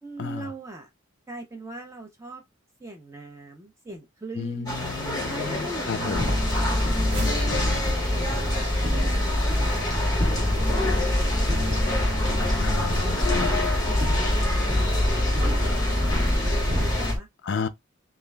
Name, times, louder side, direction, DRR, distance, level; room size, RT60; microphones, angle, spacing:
voice 1, 0.0-0.9 1.3-2.4 2.8-4.8 5.3-7.6 8.1-12.2 12.7-14.9 15.1-17.3, right 1 dB, 15° right, 0.4 m, -41 dB
voice 2, 4.4-6.3 7.1-8.0 12.6-13.5 17.5-17.7, left 5 dB, 55° left, 0.4 m, -32 dB
sound 1, 4.7-17.1, left 2 dB, 20° left, 0.9 m, -29 dB
sound 2, 6.1-17.2, left 1 dB, 55° right, 1.3 m, -25 dB
2.3 x 2.1 x 3.2 m
head